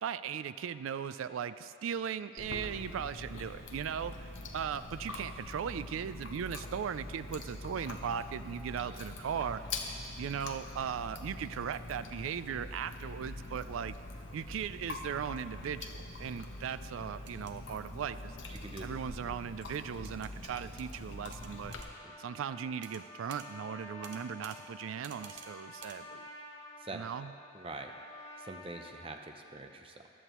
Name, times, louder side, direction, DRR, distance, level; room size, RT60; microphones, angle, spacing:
voice 1, 0.0-9.7 10.2-14.0 14.3-18.4 18.8-21.8 22.2-26.3 26.9-27.3, right 7 dB, 80° right, 13 dB, 0.3 m, -38 dB
Chewing mastication, 2.4-21.8, left 2 dB, 70° left, 0.9 m, -44 dB
sound 1, 17.3-17.5 18.6-18.8 20.0-20.3 20.8-21.0 21.3-21.9 22.8-23.0 23.3-23.5 24.0-24.6 25.0-25.5 25.8-26.0, right 5 dB, 60° right, 0.8 m, -50 dB
voice 2, 18.5-18.8 22.0-22.1 26.8-27.0 27.5-27.9 28.4-30.1, right 2 dB, 25° right, 4 dB, 0.6 m, -44 dB
Trumpet, 20.9-28.9, left 2 dB, 20° left, 2.6 m, -51 dB
15.0 x 11.0 x 3.0 m, 2.7 s
head